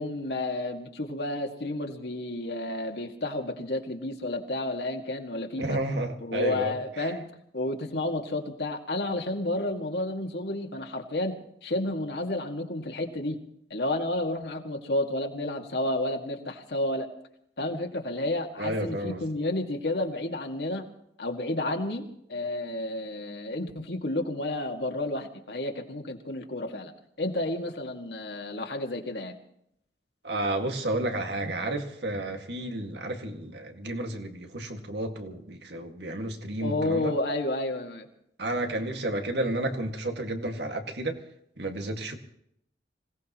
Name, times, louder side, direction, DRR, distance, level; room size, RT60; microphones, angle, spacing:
voice 1, 0.0-5.8 6.2-11.4 11.6-13.4 13.7-17.1 17.6-20.9 21.2-26.9 27.2-29.3 36.6-38.1, left 1 dB, 70° left, 3 dB, 2.0 m, -31 dB
voice 2, 5.6-7.1 18.6-19.2 30.2-37.1 38.4-41.2 41.6-42.2, right 1 dB, 75° right, 4 dB, 2.0 m, -31 dB
26.0 x 17.5 x 3.1 m, 0.74 s
head